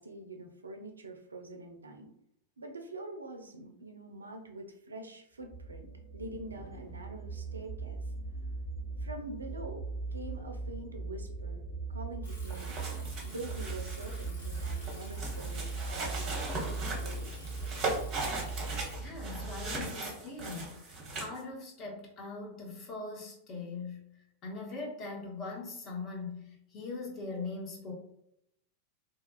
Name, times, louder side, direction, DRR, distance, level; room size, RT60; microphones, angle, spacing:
voice 1, 0.0-2.1 2.6-8.0 9.0-11.6 11.9-12.8 13.2-17.5, right 2 dB, 75° right, 4 dB, 0.4 m, -45 dB
sound 1, 5.4-19.9, right 3 dB, 10° left, 1.1 m, -39 dB
Bicycle, 12.2-18.9, left 1 dB, 75° left, 0.9 m, -53 dB
sound 2, 12.3-21.4, right 3 dB, 35° right, 0.8 m, -39 dB
voice 2, 18.9-24.1 24.4-27.9, left 3 dB, 35° left, -1 dB, 0.8 m, -41 dB
2.7 x 2.3 x 2.2 m, 0.76 s
figure-of-eight pair, 90°, 0 cm